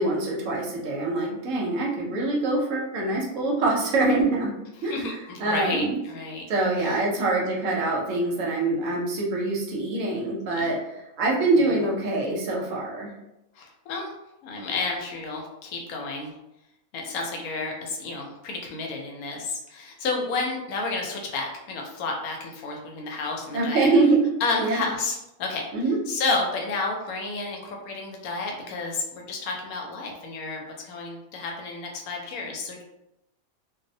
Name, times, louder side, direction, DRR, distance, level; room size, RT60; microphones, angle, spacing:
voice 1, 0.0-4.5 4.8-4.9 5.4-6.0 6.5-13.1 23.5-24.2 24.6-24.8 25.7-26.0, right 2 dB, 70° right, -2 dB, 0.9 m, -24 dB
voice 2, 4.8-6.4 6.8-7.0 10.6-10.8 11.6-11.8 13.6-14.1 14.4-16.4 16.9-23.9 24.4-25.7 26.1-32.8, left 3 dB, 80° left, 1 dB, 1.0 m, -31 dB
2.5 x 2.0 x 2.6 m, 0.90 s
omnidirectional pair, 1.5 m